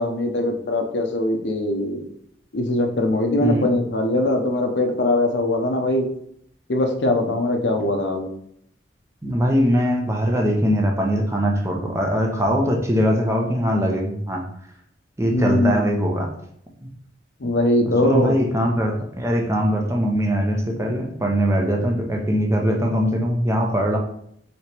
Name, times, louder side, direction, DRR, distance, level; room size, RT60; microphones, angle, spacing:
voice 1, 0.0-2.0 2.5-6.1 6.7-8.3 15.3-15.9 17.4-18.4, left 1 dB, 75° left, 4 dB, 0.7 m, -21 dB
voice 2, 3.4-3.7 9.2-14.5 15.2-16.3 16.8-16.9 18.0-24.0, equal, 15° right, 1 dB, 0.6 m, -21 dB
3.2 x 2.9 x 4.3 m, 0.69 s
head